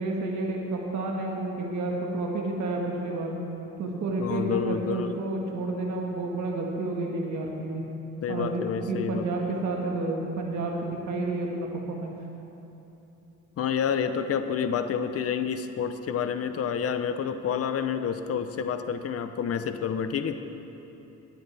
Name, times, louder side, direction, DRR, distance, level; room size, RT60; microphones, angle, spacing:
voice 1, 0.0-3.3 3.8-7.8 8.3-12.1, right 2 dB, 70° right, -1 dB, 1.6 m, -30 dB
voice 2, 4.2-5.1 8.2-9.2 13.6-20.4, left 7 dB, 50° left, 9 dB, 0.8 m, -29 dB
21.0 x 9.6 x 3.4 m, 3.0 s
cardioid pair, 90°, 30 cm